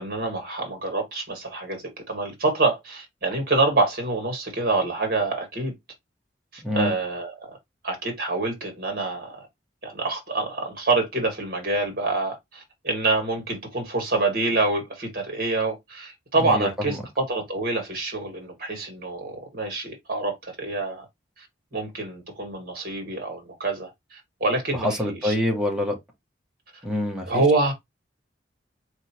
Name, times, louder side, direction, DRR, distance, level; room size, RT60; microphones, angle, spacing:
voice 1, 0.0-5.7 6.5-7.6 7.8-9.5 9.8-21.1 21.4-21.5 21.7-25.3 27.3-27.7, right 3 dB, 50° right, 1.8 m, -26 dB
voice 2, 6.6-6.9 16.4-17.0 24.7-26.0 26.8-27.5, left 1 dB, 5° right, 1.0 m, -26 dB
4.4 x 3.1 x 2.8 m
head